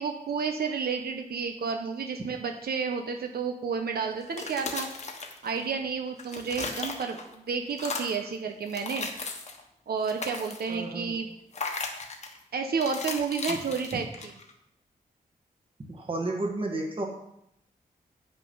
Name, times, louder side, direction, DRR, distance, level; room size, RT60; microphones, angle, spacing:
voice 1, 0.0-4.9 5.4-9.1 9.9-11.3 12.5-14.3, right 5 dB, 85° right, 4 dB, 0.8 m, -31 dB
sound 1, 4.2-5.8 6.1-7.3 7.7-8.3 8.7-9.6 10.0-10.8 11.5-12.4 12.8-14.5, left 3 dB, 45° left, 1.1 m, -36 dB
voice 2, 10.7-11.2 13.5-13.6 15.9-17.0, right 2 dB, 35° right, 1 dB, 1.6 m, -32 dB
9.1 x 6.2 x 5.5 m, 0.79 s
wide cardioid pair, 180°, 16 cm